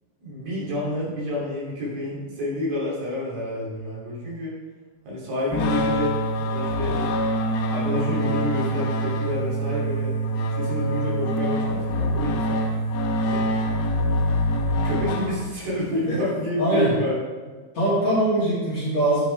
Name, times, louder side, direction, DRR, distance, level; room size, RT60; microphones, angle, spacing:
voice 1, 0.2-4.6 5.0-7.1 7.7-10.2 10.6-12.6 13.2-13.5 14.6-17.2, left 1 dB, 55° right, -6 dB, 4.7 m, -29 dB
sound 1, 5.5-15.8, equal, 75° left, 2.5 m, -25 dB
voice 2, 16.6-16.9 17.7-19.2, right 1 dB, 45° left, -8 dB, 2.8 m, -22 dB
11.0 x 10.5 x 3.5 m, 1.4 s
omnidirectional pair, 5.5 m